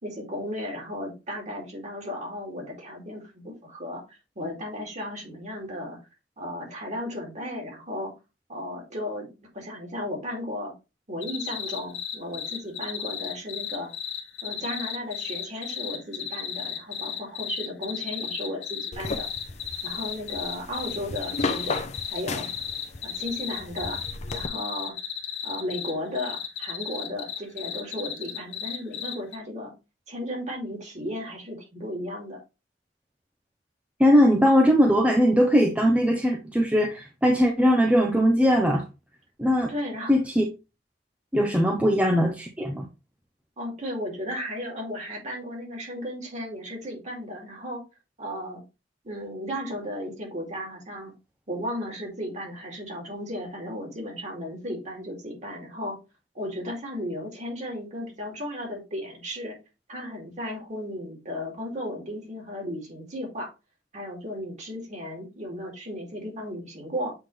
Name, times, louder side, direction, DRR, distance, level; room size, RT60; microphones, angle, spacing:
voice 1, 0.0-4.0 4.4-6.0 6.4-8.1 8.5-10.7 11.1-13.9 14.4-19.3 19.8-22.5 23.0-24.0 24.3-24.9 25.4-29.7 30.1-32.4 39.7-40.2 43.6-47.8 48.2-48.6 49.0-51.1 51.5-56.0 56.3-59.6 59.9-63.5 63.9-67.1, equal, 40° right, 2.7 m, -35 dB
sound 1, 11.2-29.4, left 9 dB, 70° left, 1.1 m, -34 dB
sound 2, 18.9-24.5, left 3 dB, 40° left, 0.7 m, -35 dB
voice 2, 34.0-38.8 39.4-39.7 40.1-40.5 41.3-42.9, equal, 5° right, 0.7 m, -20 dB
7.6 x 3.8 x 3.3 m
head